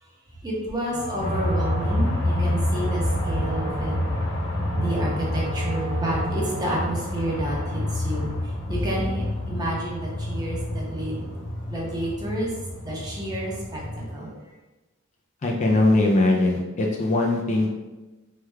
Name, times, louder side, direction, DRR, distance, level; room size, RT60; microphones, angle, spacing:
voice 1, 0.4-3.9 4.7-11.3 11.7-14.5, right 1 dB, 20° right, -4 dB, 0.8 m, -30 dB
Wind instrument woodwind instrument, 0.9-6.9, right 2 dB, 50° right, 0.9 m, -36 dB
sound 1, 1.2-14.1, left 1 dB, 80° left, 0.8 m, -28 dB
voice 2, 15.4-17.7, left 2 dB, 35° left, -1 dB, 0.4 m, -21 dB
3.2 x 2.3 x 3.2 m, 1.1 s
head